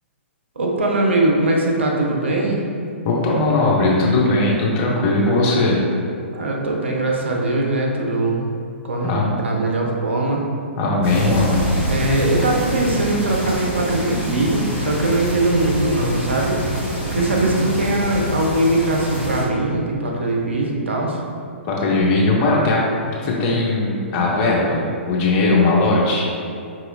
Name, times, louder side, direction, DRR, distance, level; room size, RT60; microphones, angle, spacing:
voice 1, 0.6-2.6 6.3-8.5 8.8-10.4 11.9-16.7 17.0-21.2, right 2 dB, 65° right, -1 dB, 0.7 m, -21 dB
voice 2, 3.0-5.8 9.0-9.3 10.8-11.7 17.1-17.5 21.6-22.8 23.2-26.3, left 2 dB, 30° left, -4 dB, 0.8 m, -19 dB
sound 1, 11.0-19.4, equal, 30° right, 1.3 m, -26 dB
5.4 x 2.9 x 2.7 m, 2.4 s
figure-of-eight pair, 115°, 7 cm